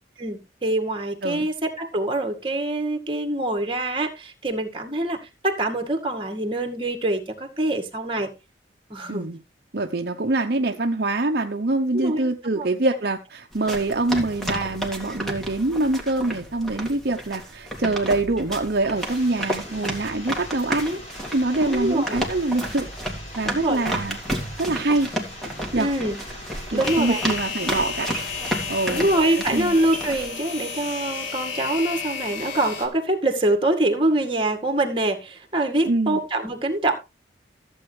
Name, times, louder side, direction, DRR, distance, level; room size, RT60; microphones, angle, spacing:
voice 1, 0.2-8.3 8.9-9.3 11.9-12.3 12.6-12.7 20.8-21.0 21.6-22.2 23.4-23.8 25.7-26.2 26.7-27.2 28.9-37.0, right 1 dB, 25° right, 2.0 m, -24 dB
voice 2, 9.1-9.4 9.7-20.9 21.3-22.9 23.4-24.2 24.6-25.1 25.7-25.9 26.7-28.1 28.7-29.1 29.5-29.7 35.8-36.2, right 2 dB, 55° right, 0.8 m, -24 dB
sound 1, 13.5-30.3, right 1 dB, ahead, 2.2 m, -32 dB
sound 2, 18.9-29.2, left 1 dB, 40° left, 5.8 m, -41 dB
sound 3, 26.8-32.9, left 5 dB, 85° left, 3.2 m, -32 dB
15.0 x 8.0 x 3.3 m
head